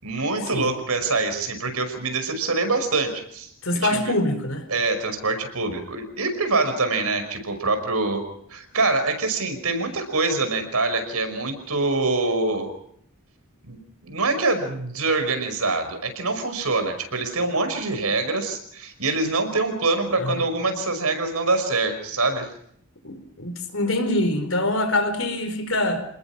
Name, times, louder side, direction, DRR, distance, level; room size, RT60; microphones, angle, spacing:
voice 1, 0.0-3.5 3.8-4.1 4.7-8.2 8.5-12.7 13.6-22.5, right 3 dB, 90° right, 8 dB, 5.7 m, -25 dB
voice 2, 3.6-4.7 20.2-20.4 23.0-26.0, left 1 dB, 65° left, 8 dB, 5.0 m, -24 dB
28.0 x 20.5 x 6.1 m, 0.68 s
head